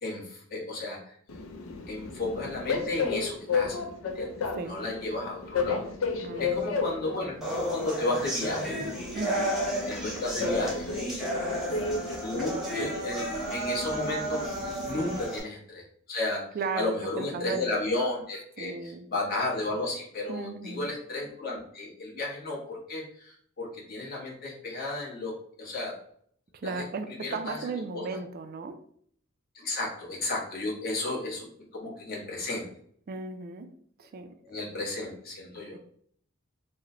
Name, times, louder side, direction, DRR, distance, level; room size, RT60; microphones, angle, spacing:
voice 1, 0.0-1.1 1.9-4.3 4.6-5.8 6.4-8.7 9.9-10.8 12.2-15.8 16.1-16.4 16.7-26.0 26.6-26.8 27.2-27.7 27.9-28.0 29.5-31.5 31.7-32.7 34.4-35.8, left 2 dB, 45° left, -4 dB, 1.1 m, -33 dB
Train, 1.3-15.2, left 4 dB, 85° left, 0.5 m, -34 dB
voice 2, 6.2-6.8 9.1-9.6 15.0-15.1 16.5-17.7 18.6-19.1 20.3-20.9 26.5-28.8 33.1-33.7 34.0-34.4 35.5-35.8, right 4 dB, 50° right, 9 dB, 0.3 m, -36 dB
sound 1, 7.4-15.4, right 1 dB, ahead, 0.8 m, -32 dB
3.0 x 2.1 x 3.7 m, 0.63 s
head